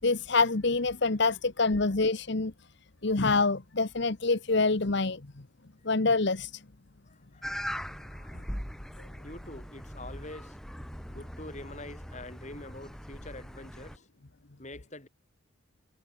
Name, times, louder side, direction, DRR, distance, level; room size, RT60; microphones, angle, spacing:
voice 1, 0.0-2.5 3.0-5.2 5.8-6.6, left 3 dB, 55° left, 1.1 m, -26 dB
voice 2, 7.0-8.6 9.2-10.6 11.1-14.1 14.6-15.1, left 2 dB, 35° left, 5.0 m, -46 dB
sound 1, 7.4-14.0, equal, ahead, 3.5 m, -41 dB
head